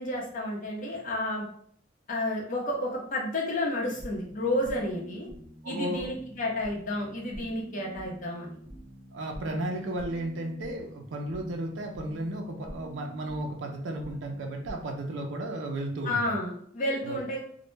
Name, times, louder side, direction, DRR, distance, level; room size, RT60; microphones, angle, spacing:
voice 1, 0.0-1.4 2.1-5.3 5.6-8.6 16.0-17.4, left 1 dB, 45° left, -2 dB, 0.7 m, -31 dB
sound 1, 3.8-14.7, equal, 40° right, 0.6 m, -46 dB
voice 2, 5.6-6.1 9.1-16.2 17.0-17.2, right 1 dB, 85° right, 2 dB, 0.4 m, -34 dB
2.1 x 2.0 x 3.1 m, 0.63 s
head